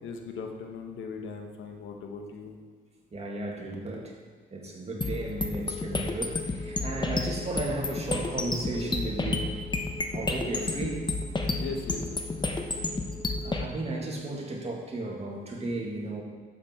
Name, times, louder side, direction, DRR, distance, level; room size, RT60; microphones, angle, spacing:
voice 1, 0.0-2.5 6.9-7.2 11.6-12.0 12.3-12.9, left 4 dB, 80° left, 3 dB, 1.4 m, -39 dB
voice 2, 3.1-4.1 4.5-9.6 10.1-11.1 13.4-16.2, right 2 dB, 30° right, -1 dB, 2.2 m, -34 dB
sound 1, 5.0-13.6, left 3 dB, 20° left, 1.1 m, -31 dB
12.0 x 8.0 x 4.5 m, 1.5 s
cardioid pair, 90°, 20 cm